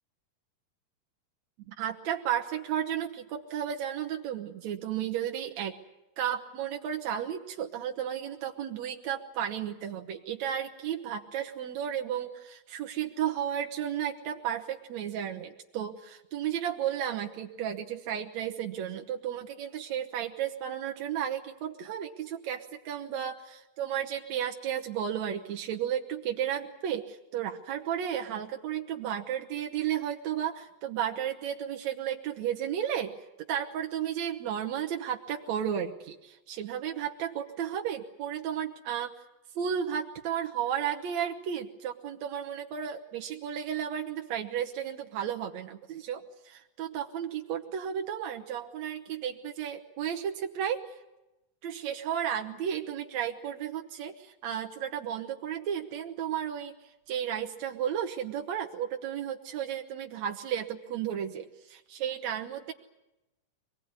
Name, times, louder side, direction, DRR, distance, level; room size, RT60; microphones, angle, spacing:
voice 1, 1.7-5.8 6.2-33.1 33.4-39.1 39.5-50.8 51.6-56.7 57.1-62.7, right 9 dB, 70° right, 2 dB, 1.7 m, -33 dB
24.0 x 20.0 x 9.6 m, 0.98 s
omnidirectional pair, 4.6 m